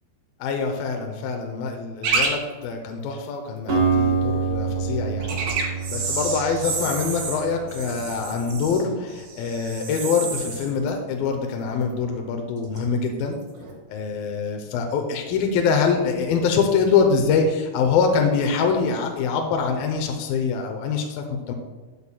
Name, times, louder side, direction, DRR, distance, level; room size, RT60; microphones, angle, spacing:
voice 1, 0.4-5.4 5.9-13.4 13.9-21.5, left 5 dB, 80° left, 3 dB, 2.4 m, -24 dB
sound 1, 2.0-2.3 2.6-2.7 5.2-12.1 12.3-12.8 13.5-13.7, right 4 dB, 85° right, 4.1 m, -30 dB
Acoustic guitar, 3.7-7.8, right 5 dB, 55° right, 1.2 m, -26 dB
12.5 x 8.2 x 2.2 m, 1.4 s
omnidirectional pair, 4.6 m